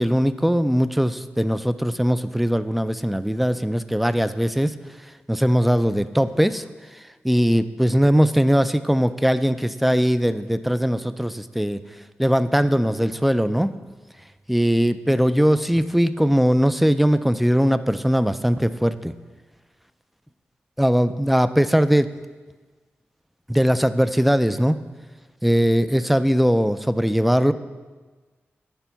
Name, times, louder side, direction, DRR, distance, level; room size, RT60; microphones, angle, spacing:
voice 1, 0.0-4.7 5.3-6.6 6.9-11.8 12.2-13.7 14.5-19.1 20.8-22.1 23.5-24.8 25.4-27.5, equal, ahead, 13 dB, 0.3 m, -20 dB
10.0 x 4.5 x 5.7 m, 1.3 s
wide cardioid pair, 90°, 5 cm